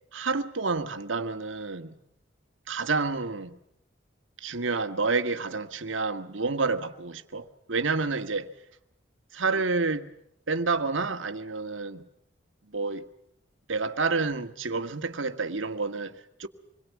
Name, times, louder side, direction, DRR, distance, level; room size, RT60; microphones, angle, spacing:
voice 1, 0.1-2.0 2.7-3.6 4.4-8.5 9.3-10.1 10.5-12.0 12.7-13.0 13.7-16.5, right 4 dB, 85° right, 1.7 m, -29 dB
26.5 x 22.0 x 8.3 m
head